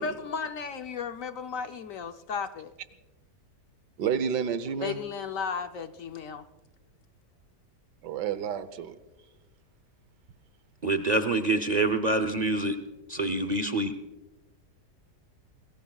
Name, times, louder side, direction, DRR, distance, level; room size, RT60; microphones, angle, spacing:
voice 1, 0.0-2.7 4.8-6.5, left 6 dB, 60° left, 1.0 m, -34 dB
voice 2, 4.0-5.0 8.0-9.0, right 8 dB, 80° right, 1.5 m, -30 dB
voice 3, 10.8-12.8 13.1-13.9, right 2 dB, 45° right, 0.5 m, -26 dB
27.0 x 21.0 x 2.3 m
omnidirectional pair, 1.8 m